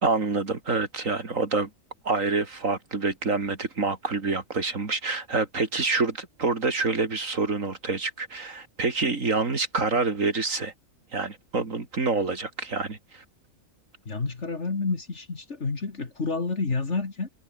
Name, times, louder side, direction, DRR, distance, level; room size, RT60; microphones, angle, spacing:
voice 1, 0.0-1.7 2.0-10.7 11.1-13.2, right 3 dB, 70° right, 3.2 m, -27 dB
voice 2, 14.1-17.3, left 4 dB, 55° left, 2.7 m, -29 dB
omnidirectional pair, 1.4 m